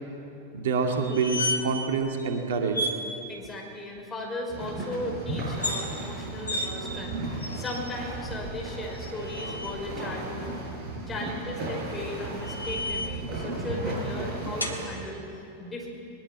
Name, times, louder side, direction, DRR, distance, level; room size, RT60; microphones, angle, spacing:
voice 1, 0.5-2.9, right 4 dB, 60° right, 3 dB, 2.3 m, -27 dB
sound 1, 1.0-1.9 2.2-2.3 2.7-3.0 5.5-5.9 6.5-6.7 7.4-8.0 8.9-9.8 11.6-13.3 14.6-14.8, left 1 dB, 85° left, 2.5 m, -33 dB
voice 2, 3.3-10.4 11.1-15.9, left 2 dB, 15° left, 0 dB, 5.6 m, -36 dB
sound 2, 4.5-14.8, right 2 dB, 30° right, 7.4 m, -35 dB
21.5 x 20.5 x 8.6 m, 2.7 s
figure-of-eight pair, 90°, 0 cm